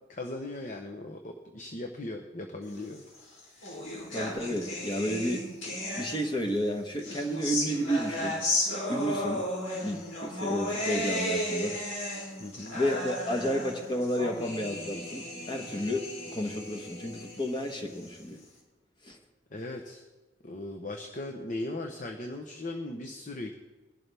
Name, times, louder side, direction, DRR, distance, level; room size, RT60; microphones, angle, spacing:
voice 1, 0.1-3.0 12.4-12.8 19.5-20.0 20.4-23.5, left 2 dB, 40° left, 3 dB, 0.9 m, -38 dB
sound 1, 3.1-6.5 7.0-18.5, left 1 dB, 80° left, 3.8 m, -35 dB
voice 2, 4.1-8.4 8.9-9.4 9.8-11.8 12.7-16.1 16.3-18.4 19.0-19.2, equal, 25° left, 3 dB, 1.1 m, -31 dB
21.0 x 11.5 x 3.5 m, 1.2 s
head